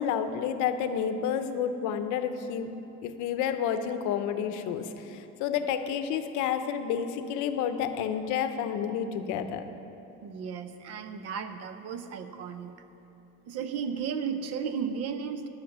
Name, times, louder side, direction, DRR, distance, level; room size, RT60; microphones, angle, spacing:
voice 1, 0.0-2.7 3.0-9.6, left 8 dB, 70° left, 9 dB, 0.7 m, -30 dB
voice 2, 10.2-12.7 13.5-15.5, right 6 dB, 50° right, 9 dB, 0.7 m, -34 dB
11.5 x 5.9 x 7.9 m, 3.0 s
cardioid pair, 170°, 31 cm